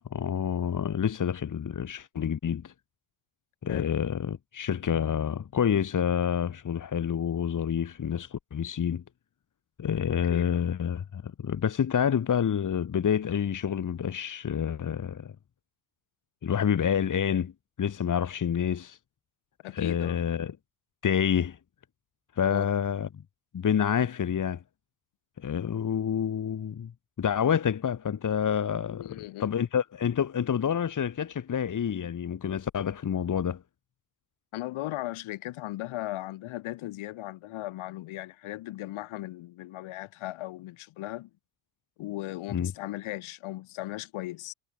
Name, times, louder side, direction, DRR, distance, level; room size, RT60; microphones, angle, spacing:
voice 1, 0.1-2.7 3.6-9.0 9.8-15.3 16.4-17.5 17.8-19.0 19.7-20.5 21.0-21.6 22.4-23.1 23.5-24.6 25.4-26.9 27.2-33.6 42.5-42.7, left 8 dB, 40° left, 3.4 m, -28 dB
voice 2, 19.6-20.2 22.4-22.7 28.9-29.5 34.5-41.3 42.0-44.5, left 16 dB, 75° left, 5.9 m, -37 dB
cardioid pair, 115°, 49 cm